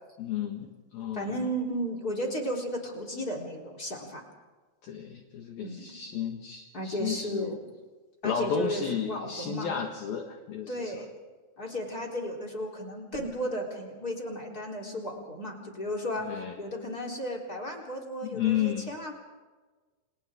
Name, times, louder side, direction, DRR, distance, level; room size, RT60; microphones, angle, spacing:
voice 1, 0.2-1.3 4.8-7.6 8.2-10.9 16.2-16.5 18.2-18.9, left 9 dB, 60° left, 3 dB, 3.1 m, -33 dB
voice 2, 1.1-4.2 5.6-6.0 6.7-7.6 8.2-9.7 10.7-11.1 11.6-19.1, equal, 20° left, 2 dB, 3.6 m, -34 dB
29.5 x 29.0 x 3.7 m, 1.3 s
omnidirectional pair, 5.5 m